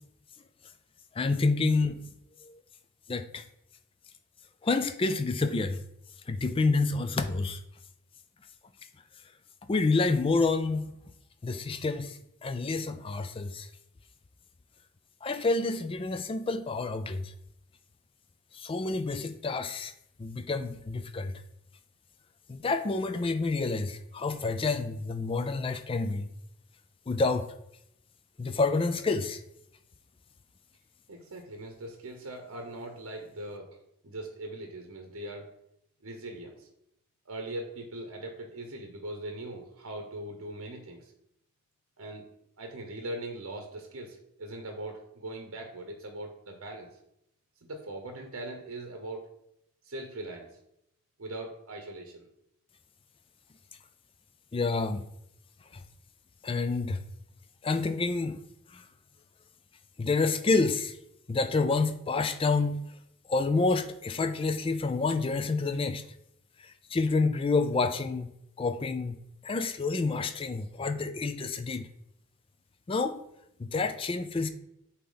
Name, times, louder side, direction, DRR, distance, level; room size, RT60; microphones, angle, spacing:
voice 1, 1.1-2.0 2.4-2.6 3.1-3.4 4.6-5.8 6.3-7.6 9.7-10.9 11.4-13.7 15.2-17.3 18.5-19.9 20.2-21.4 22.5-26.3 27.1-27.5 28.4-29.4 54.5-55.0 55.7-55.8 56.4-57.0 57.6-58.4 58.7-58.8 60.0-61.0 61.3-62.8 63.3-66.0 66.6-68.3 68.6-69.2 69.4-71.9 72.9-73.2 73.6-74.5, left 3 dB, 25° left, 0.3 m, -28 dB
voice 2, 31.1-33.7 34.0-35.5 36.0-36.7 37.2-41.1 42.0-42.3 42.6-46.9 47.6-49.3 49.8-50.6 51.2-52.3, right 1 dB, 70° right, 0.8 m, -40 dB
8.3 x 2.9 x 3.9 m
head